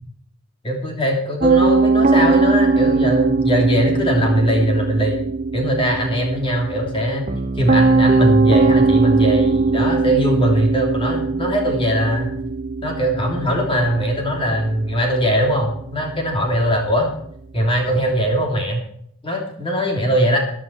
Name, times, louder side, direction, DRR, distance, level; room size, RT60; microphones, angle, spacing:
voice 1, 0.6-5.2 5.5-7.3 7.6-12.3 12.8-17.1 17.5-18.8 19.2-20.4, right 1 dB, 25° left, 0 dB, 3.1 m, -20 dB
Piano, 1.4-18.5, right 3 dB, 35° right, 0.7 m, -21 dB
14.5 x 10.5 x 4.6 m, 0.67 s
head